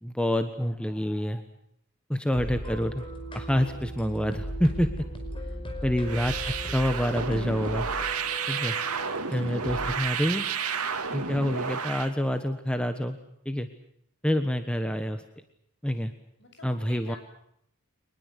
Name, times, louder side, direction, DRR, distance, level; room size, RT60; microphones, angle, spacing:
voice 1, 0.0-1.4 2.1-3.0 3.3-4.9 5.8-7.9 8.5-8.7 9.3-10.5 11.1-13.2 13.4-13.7 14.2-15.2 15.8-16.1 16.6-17.2, equal, 5° left, 8 dB, 1.3 m, -27 dB
sound 1, 2.3-10.0, equal, 25° left, 5.1 m, -37 dB
voice 2, 5.4-6.3 9.0-9.6 16.4-17.2, left 3 dB, 55° left, 5 dB, 7.1 m, -52 dB
sound 2, 6.0-12.1, right 6 dB, 90° right, 2.4 m, -31 dB
24.0 x 20.5 x 8.3 m, 0.71 s
head